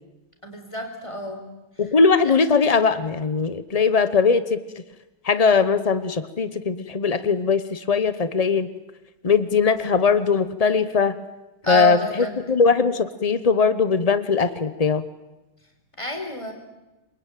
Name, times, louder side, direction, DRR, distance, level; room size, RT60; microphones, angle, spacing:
voice 1, 0.4-1.4 2.2-2.3 11.6-12.3 16.0-16.5, right 1 dB, 15° left, 4 dB, 4.5 m, -28 dB
voice 2, 1.8-4.6 5.2-8.7 9.2-11.2 11.7-15.0, left 5 dB, 80° left, 13 dB, 0.3 m, -20 dB
27.5 x 23.0 x 9.1 m, 1.0 s
omnidirectional pair, 2.3 m